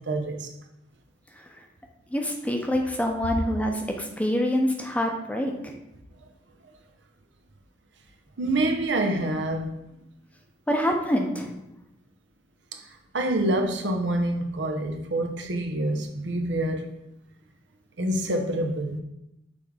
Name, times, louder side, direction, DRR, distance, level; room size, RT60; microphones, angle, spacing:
voice 1, 0.1-0.5 8.4-9.7 12.7-12.8 13.1-16.9 18.0-19.0, right 1 dB, 80° right, 0.9 m, -26 dB
voice 2, 2.1-5.7 10.7-11.5, equal, 10° left, 0.7 m, -26 dB
6.8 x 3.5 x 5.0 m
head